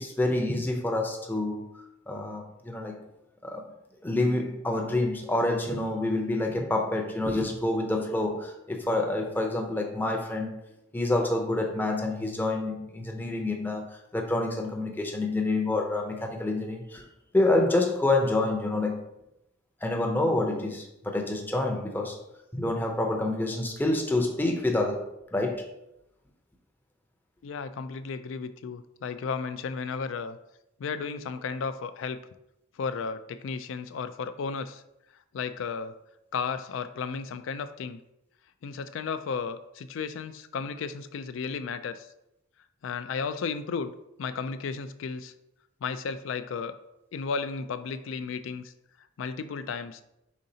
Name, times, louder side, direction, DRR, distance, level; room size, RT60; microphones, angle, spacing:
voice 1, 0.0-1.7 2.1-3.0 3.4-3.6 4.0-10.6 10.9-17.0 17.3-19.0 19.8-22.2 22.5-25.7, left 2 dB, 10° left, 0.5 m, -27 dB
voice 2, 27.4-30.4 30.8-32.2 32.8-34.8 35.3-36.0 36.3-38.0 38.6-42.1 42.8-43.9 44.2-45.3 45.8-46.7 47.1-48.7 49.2-50.0, left 5 dB, 75° left, 0.3 m, -34 dB
5.2 x 3.7 x 2.7 m
head